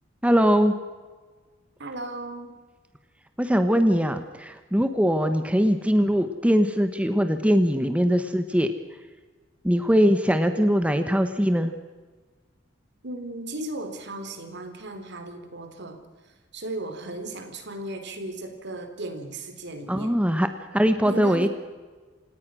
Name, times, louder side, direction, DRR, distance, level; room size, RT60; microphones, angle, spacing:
voice 1, 0.2-0.7 3.4-8.7 9.6-11.7 19.9-20.5 20.7-21.5, equal, 5° right, 8 dB, 1.1 m, -21 dB
voice 2, 1.8-2.5 13.0-16.0 16.5-20.1 21.0-21.5, right 2 dB, 60° right, 7 dB, 3.4 m, -36 dB
28.0 x 18.5 x 6.3 m, 1.4 s
head